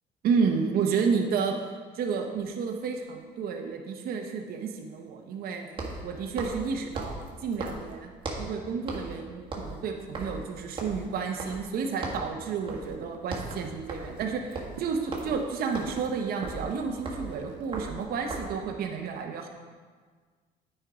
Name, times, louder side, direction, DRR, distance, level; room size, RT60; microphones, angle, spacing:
voice 1, 0.2-1.5 1.9-5.7 6.0-7.1 7.4-8.1 8.4-19.5, right 5 dB, 65° right, 3 dB, 0.8 m, -31 dB
sound 1, 2.4-2.5 5.7-8.6 8.9-9.2 9.4-11.8 12.0-12.3 12.7-13.0 13.2-18.6, right 3 dB, 30° right, 1.6 m, -38 dB
Walk footsteps, 12.5-12.7 13.0-13.4 13.6-18.3, right 10 dB, 90° right, 0.4 m, -48 dB
8.9 x 4.5 x 4.9 m, 1.5 s
cardioid pair, 110°, 17 cm